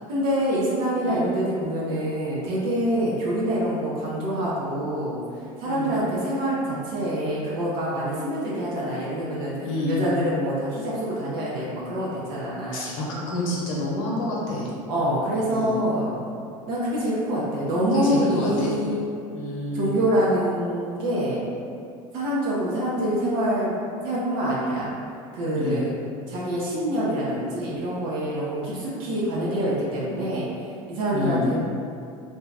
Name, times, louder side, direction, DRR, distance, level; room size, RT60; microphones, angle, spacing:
voice 1, 0.1-5.2 5.6-9.5 9.9-12.9 14.9-16.2 16.7-19.0 19.7-21.4 22.1-23.7 24.0-24.9 25.3-26.0 26.3-30.5 30.9-31.6, equal, 65° right, -7 dB, 0.7 m, -25 dB
voice 2, 5.6-6.0 9.6-10.0 12.7-14.7 15.5-15.8 17.9-18.8 19.3-19.9 25.5-25.8 31.1-31.5, left 2 dB, 80° left, -4 dB, 0.8 m, -28 dB
2.7 x 2.2 x 3.3 m, 2.4 s
hypercardioid pair, 85°, 17 cm